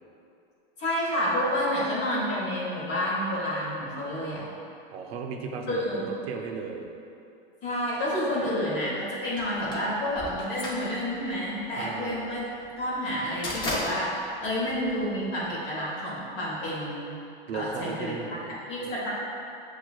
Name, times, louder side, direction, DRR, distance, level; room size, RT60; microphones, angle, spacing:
voice 1, 0.8-4.4 5.7-6.1 7.6-12.4 12.8-17.2 17.5-18.4 18.7-19.1, equal, 35° left, -6 dB, 1.1 m, -29 dB
voice 2, 4.9-6.9 11.8-12.3 17.5-18.9, right 5 dB, 85° right, 2 dB, 0.5 m, -36 dB
sound 1, 9.4-15.5, left 1 dB, 15° left, 0.5 m, -36 dB
6.1 x 2.4 x 2.3 m, 2.7 s
supercardioid pair, 145°, 30 cm